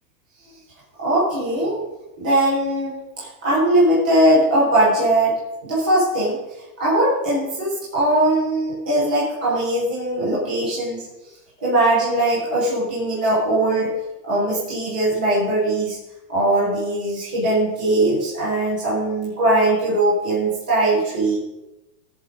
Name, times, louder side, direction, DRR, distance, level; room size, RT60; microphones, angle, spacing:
voice 1, 1.0-1.9 2.2-6.4 6.8-11.0 11.6-14.0 14.2-16.0 16.3-21.4, right 1 dB, 5° right, -9 dB, 0.4 m, -20 dB
16.0 x 6.8 x 5.0 m, 0.97 s
supercardioid pair, 170°, 50 cm